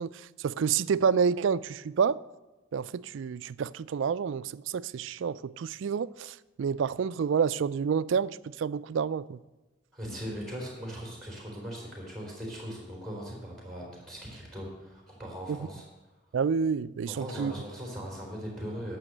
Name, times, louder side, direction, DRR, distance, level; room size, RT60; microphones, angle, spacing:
voice 1, 0.0-2.2 2.7-9.4 16.3-17.5, right 6 dB, 70° right, 0.3 m, -29 dB
voice 2, 9.9-15.8 17.1-19.0, equal, ahead, 3.7 m, -39 dB
11.0 x 6.4 x 7.8 m
head